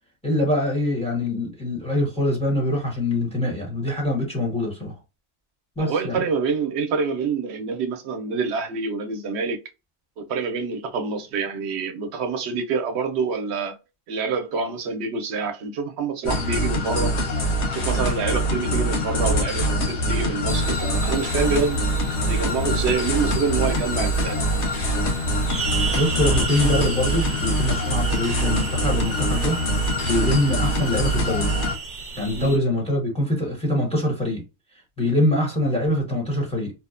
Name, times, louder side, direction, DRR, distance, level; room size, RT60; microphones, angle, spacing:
voice 1, 0.2-4.9 5.8-6.2 25.9-29.6 30.0-31.5 32.2-34.4 35.0-36.7, left 1 dB, 5° left, 1.0 m, -24 dB
voice 2, 5.8-9.6 10.2-13.8 14.1-17.1 17.7-21.8 22.3-24.4 32.3-32.5, right 5 dB, 80° right, 0.8 m, -26 dB
sound 1, 16.2-31.7, equal, 90° left, 1.1 m, -24 dB
sound 2, 20.5-32.6, right 4 dB, 50° right, 0.7 m, -34 dB
2.8 x 2.1 x 2.4 m
omnidirectional pair, 1.1 m